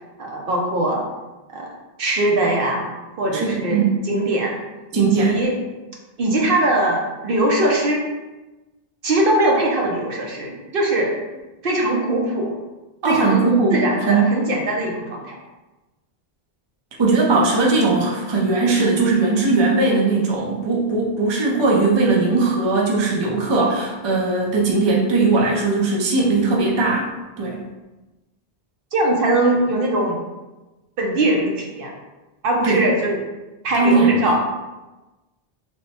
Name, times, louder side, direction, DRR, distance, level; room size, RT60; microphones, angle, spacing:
voice 1, 0.2-1.1 1.5-1.7 2.0-2.9 3.2-4.6 4.9-5.6 6.2-8.1 9.0-11.1 11.6-12.6 13.0-15.3 28.9-30.2 31.0-31.9 32.4-33.2 33.6-34.4, right 1 dB, 65° right, -1 dB, 0.8 m, -21 dB
voice 2, 3.3-4.0 4.9-5.4 13.0-14.3 17.0-27.1 27.4-27.6 32.6-32.8 33.7-34.4, right 3 dB, 35° right, -3 dB, 0.5 m, -19 dB
3.1 x 2.1 x 4.1 m, 1.1 s
omnidirectional pair, 1.0 m